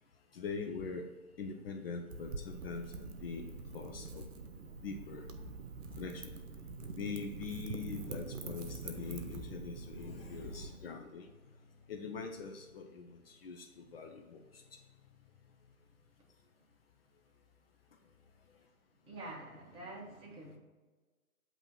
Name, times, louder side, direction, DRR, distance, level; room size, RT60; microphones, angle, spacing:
voice 1, 0.3-1.1 1.4-2.8 3.2-3.5 3.7-4.3 4.8-5.3 6.0-6.3 7.0-11.3 11.9-13.7 13.9-14.6, left 5 dB, 45° left, 4 dB, 0.6 m, -42 dB
Wind / Fire, 2.1-10.7, right 4 dB, 60° right, 0.9 m, -45 dB
voice 2, 19.1-20.6, right 2 dB, 10° right, -3 dB, 1.1 m, -47 dB
8.0 x 3.0 x 5.3 m, 1.3 s
hypercardioid pair, 140°, 43 cm